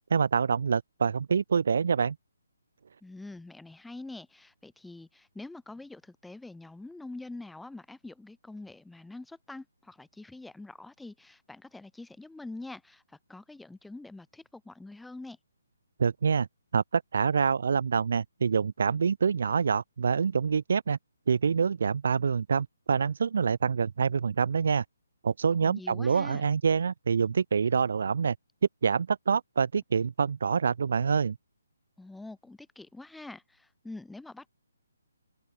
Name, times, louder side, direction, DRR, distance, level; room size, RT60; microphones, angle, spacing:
voice 1, 0.1-2.2 16.0-16.5 16.7-21.0 21.3-24.8 25.2-28.4 28.8-31.4, right 6 dB, 60° right, 0.3 m, -26 dB
voice 2, 3.0-15.4 25.6-26.5 32.0-34.5, left 2 dB, 5° left, 1.9 m, -45 dB
open air
figure-of-eight pair, 140°, 0 cm